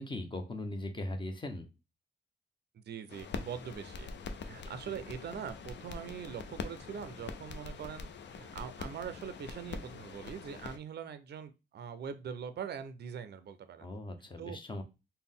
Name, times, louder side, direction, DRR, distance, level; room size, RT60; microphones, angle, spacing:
voice 1, 0.0-1.7 13.8-14.8, left 1 dB, 25° left, 5 dB, 0.7 m, -39 dB
voice 2, 2.7-4.1 4.4-13.9 14.4-14.6, right 7 dB, 60° right, 11 dB, 0.4 m, -42 dB
sound 1, 3.1-10.8, left 4 dB, 70° left, 0.5 m, -44 dB
3.9 x 2.1 x 3.6 m, 0.27 s
wide cardioid pair, 105°, 19 cm